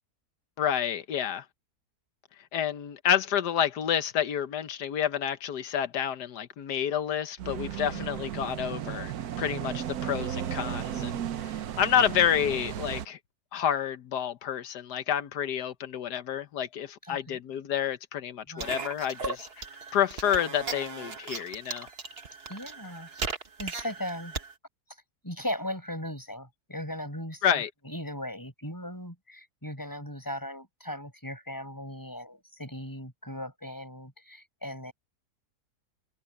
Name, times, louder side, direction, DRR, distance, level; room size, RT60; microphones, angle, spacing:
voice 1, 0.6-1.4 2.5-9.1 9.4-13.2 13.5-19.6 19.9-21.9 27.4-27.7, left 9 dB, 85° left, 1.5 m, -29 dB
sound 1, 7.4-13.1, right 10 dB, 70° right, 1.3 m, -34 dB
voice 2, 17.0-17.4 18.5-18.6 22.5-23.1 23.6-24.3 25.2-34.9, left 1 dB, 10° left, 7.3 m, -38 dB
sound 2, 18.6-24.5, right 4 dB, 40° right, 1.6 m, -37 dB
omnidirectional pair, 1.7 m